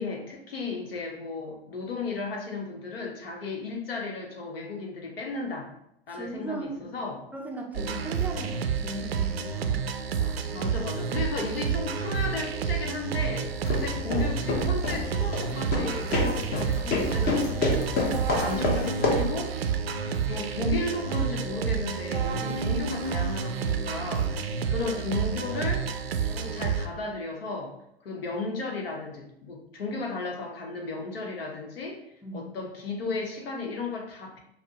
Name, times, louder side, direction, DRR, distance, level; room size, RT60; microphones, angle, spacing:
voice 1, 0.0-5.7 6.1-7.2 7.7-7.9 10.2-17.9 18.3-19.5 20.3-24.3 24.7-25.9 26.2-27.7 28.0-34.4, left 3 dB, 70° left, 1 dB, 1.0 m, -34 dB
voice 2, 6.1-6.8 7.3-9.8 32.2-32.5, right 2 dB, 5° right, -1 dB, 0.4 m, -38 dB
sound 1, 7.7-26.9, right 6 dB, 80° right, 0.5 m, -29 dB
sound 2, 13.5-19.4, left 3 dB, 30° left, 0.9 m, -29 dB
5.7 x 2.1 x 2.8 m, 0.79 s
figure-of-eight pair, 100°, 30 cm